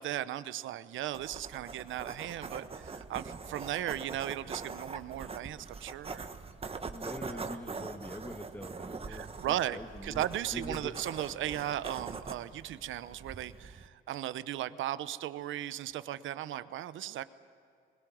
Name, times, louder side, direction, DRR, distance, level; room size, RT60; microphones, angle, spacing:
voice 1, 0.0-6.2 7.3-7.6 9.1-17.2, right 12 dB, 80° right, 14 dB, 0.8 m, -37 dB
sound 1, 1.1-13.9, right 4 dB, 30° right, 1.4 m, -43 dB
voice 2, 6.9-10.3 10.5-10.9, left 1 dB, 10° left, 4 dB, 1.5 m, -44 dB
21.0 x 20.5 x 9.4 m, 2.4 s
cardioid pair, 90°, 20 cm